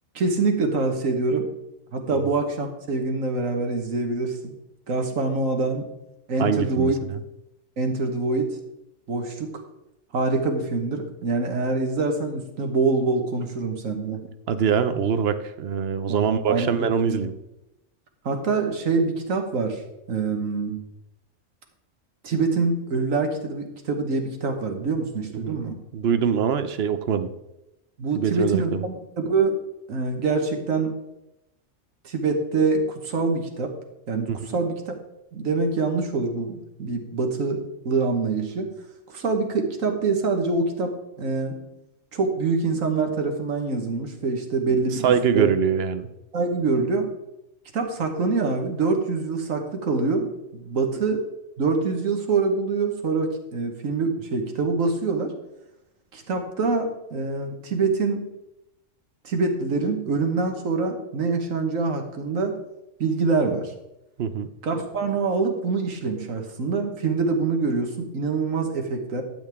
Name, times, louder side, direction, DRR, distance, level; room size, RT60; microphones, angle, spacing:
voice 1, 0.1-1.5 1.9-4.5 4.9-5.8 6.3-6.9 7.8-8.6 9.1-9.6 10.1-14.2 16.1-16.7 17.0-17.2 18.2-19.8 20.1-20.8 22.2-25.8 28.0-29.6 29.9-30.9 32.0-33.7 34.1-34.9 35.3-38.7 39.1-41.5 42.1-45.5 46.3-47.1 47.7-51.2 51.6-55.3 56.1-58.2 59.2-62.5 63.0-63.7 64.6-69.2, right 3 dB, 85° right, 4 dB, 1.7 m, -25 dB
voice 2, 6.4-7.2 14.5-17.3 25.4-25.6 25.9-27.3 28.1-28.8 34.3-34.4 45.0-46.1 64.2-64.5, right 7 dB, 55° right, 11 dB, 0.9 m, -23 dB
12.0 x 7.8 x 3.6 m, 0.90 s
omnidirectional pair, 1.3 m